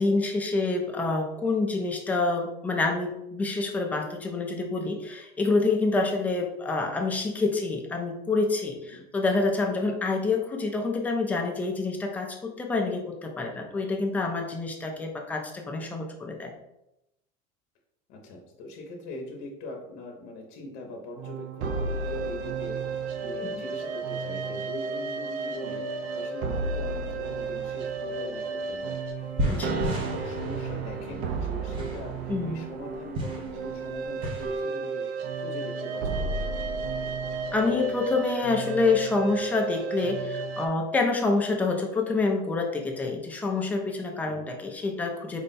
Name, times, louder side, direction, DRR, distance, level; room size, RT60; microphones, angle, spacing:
voice 1, 0.0-16.5 29.5-29.7 32.3-32.6 37.5-45.4, left 3 dB, 10° left, 1 dB, 0.4 m, -27 dB
voice 2, 18.1-36.5 44.2-44.5, left 2 dB, 60° left, 1 dB, 0.7 m, -41 dB
sound 1, 21.2-40.7, right 4 dB, 50° right, 0.4 m, -32 dB
sound 2, 28.7-28.8 29.1-34.6, right 1 dB, 30° right, 0.9 m, -34 dB
4.5 x 2.1 x 3.9 m, 0.86 s
cardioid pair, 170°, 18 cm